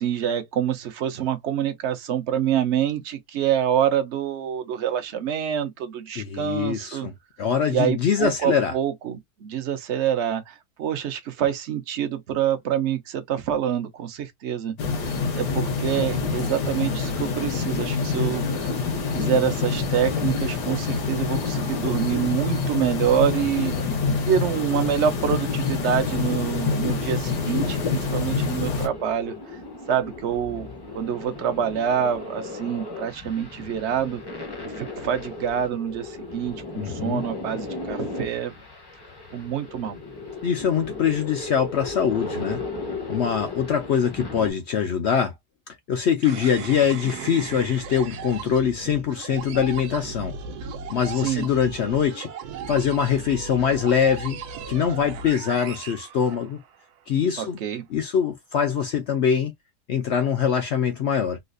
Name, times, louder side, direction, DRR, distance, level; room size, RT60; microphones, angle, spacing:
voice 1, 0.0-7.1 7.7-14.7 15.0-18.7 19.1-23.7 24.3-29.3 29.9-30.7 30.9-34.2 34.6-38.5 39.3-40.0 51.1-51.4 57.4-57.9, right 9 dB, 55° right, 0.8 m, -26 dB
voice 2, 6.2-8.7 36.8-37.2 40.4-42.6 43.1-45.3 45.9-50.4 50.9-52.3 52.7-54.4 54.7-56.6 57.1-57.6 57.9-59.5 59.9-61.4, left 7 dB, 70° left, 0.6 m, -23 dB
sound 1, 14.8-28.9, left 4 dB, 85° left, 1.7 m, -26 dB
sound 2, 26.2-44.5, left 3 dB, 25° left, 0.6 m, -36 dB
sound 3, 46.2-56.8, right 5 dB, 70° right, 1.2 m, -37 dB
3.9 x 2.4 x 2.5 m
omnidirectional pair, 1.7 m